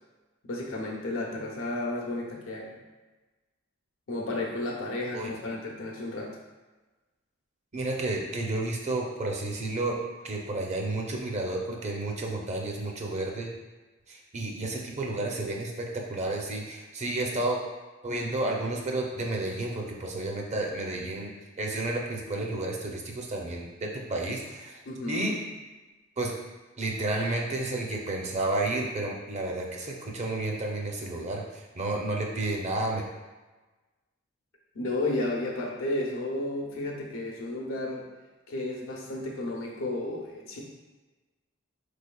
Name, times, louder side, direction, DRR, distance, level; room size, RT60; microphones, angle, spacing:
voice 1, 0.4-2.7 4.1-6.3 24.8-25.3 34.7-38.0 38.5-40.6, left 2 dB, 90° left, -1 dB, 0.8 m, -32 dB
voice 2, 7.7-10.0 10.2-13.5 14.1-17.6 18.0-21.3 21.6-24.8 25.1-25.4 26.2-26.3 26.8-33.0, right 2 dB, 35° right, 0 dB, 0.5 m, -31 dB
3.9 x 3.3 x 2.2 m, 1.2 s
head